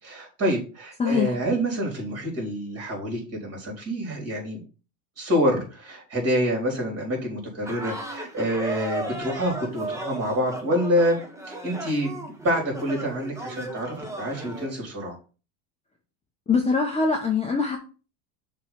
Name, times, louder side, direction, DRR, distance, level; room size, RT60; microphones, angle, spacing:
voice 1, 0.0-4.6 5.2-11.2 11.4-15.2, equal, 30° right, 0 dB, 4.1 m, -27 dB
voice 2, 1.0-1.4 16.5-17.8, left 4 dB, 15° left, 1 dB, 0.9 m, -23 dB
sound 1, 7.6-14.7, right 1 dB, 5° right, 1.0 m, -35 dB
6.7 x 3.4 x 5.8 m, 0.35 s
supercardioid pair, 135°, 46 cm